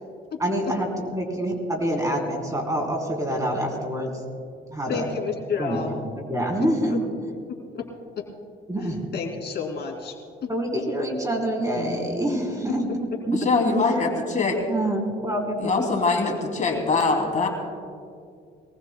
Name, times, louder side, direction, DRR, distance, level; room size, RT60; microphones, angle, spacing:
voice 1, 0.4-4.1 4.7-5.1 5.6-5.8 6.1-7.0 8.7-9.0 10.5-12.9 13.3-13.4 13.7-13.9 14.7-15.7, right 1 dB, 15° right, 0 dB, 3.5 m, -26 dB
voice 2, 4.9-5.9 6.9-7.0 7.7-7.9 8.2-8.3 8.8-10.1 10.4-10.5, left 6 dB, 55° left, 0 dB, 2.7 m, -30 dB
voice 3, 11.8-12.1 13.3-14.6 15.6-17.5, left 3 dB, 40° left, 1 dB, 2.7 m, -23 dB
23.5 x 18.5 x 2.2 m, 2.3 s
cardioid pair, 90°, 20 cm